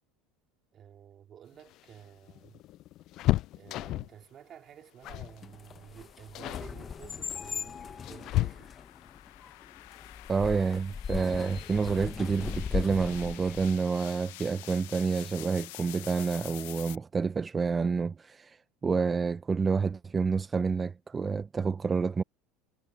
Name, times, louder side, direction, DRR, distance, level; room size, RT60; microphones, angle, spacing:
voice 1, 0.7-2.6 3.6-8.7, right 9 dB, 40° right, 2.9 m, -51 dB
sound 1, 1.5-4.2 5.0-5.4 5.7-5.9 6.3-6.7 7.5-9.0 10.8-10.9 11.2-11.3 12.5-12.9 13.3-13.4 13.7-13.9, left 16 dB, 55° left, 0.4 m, -33 dB
sound 2, 4.9-17.0, left 21 dB, 80° left, 0.9 m, -49 dB
sound 3, 5.1-13.7, left 7 dB, 30° left, 1.1 m, -39 dB
voice 2, 10.3-22.2, right 5 dB, 25° right, 0.7 m, -29 dB
supercardioid pair, 100°, 0 cm